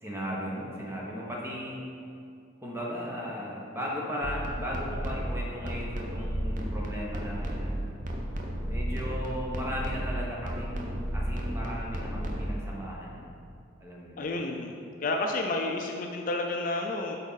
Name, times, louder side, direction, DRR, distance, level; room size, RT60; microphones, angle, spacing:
voice 1, 0.0-1.8 2.6-7.8 8.6-13.4 13.8-14.3, equal, 10° right, -4 dB, 0.9 m, -36 dB
sound 1, 4.2-12.6, right 1 dB, 40° right, 0.6 m, -33 dB
voice 2, 14.2-14.8 15.0-17.2, left 2 dB, 45° left, 2 dB, 0.4 m, -30 dB
7.8 x 3.6 x 4.0 m, 2.4 s
head